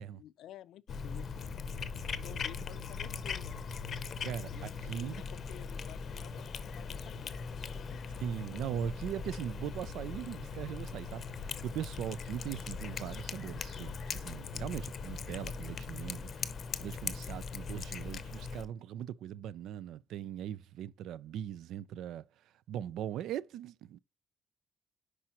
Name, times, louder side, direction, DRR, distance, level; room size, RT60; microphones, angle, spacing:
voice 1, 0.0-1.6 2.1-3.5 4.5-7.3 7.9-8.0 8.5-8.8, left 12 dB, 75° left, 0.5 m, -53 dB
Cat, 0.9-18.6, left 5 dB, 40° left, 0.7 m, -40 dB
voice 2, 4.2-5.2 8.2-16.5 16.8-22.2 22.7-24.0, right 10 dB, 80° right, 0.4 m, -40 dB
10.0 x 4.9 x 2.9 m
cardioid pair, 170°, 0 cm